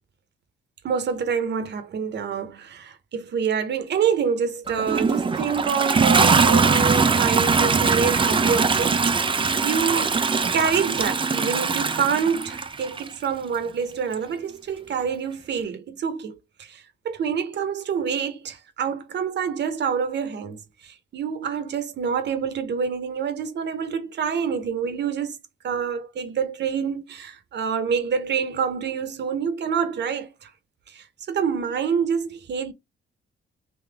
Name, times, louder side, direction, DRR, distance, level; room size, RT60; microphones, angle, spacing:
voice 1, 0.8-10.2 10.5-25.4 25.6-30.5 30.9-32.7, right 6 dB, 60° right, 1.2 m, -27 dB
Toilet flush, 4.7-13.1 14.1-14.2, right 4 dB, 25° right, 0.6 m, -21 dB
3.9 x 3.0 x 3.5 m
cardioid pair, 90°, 20 cm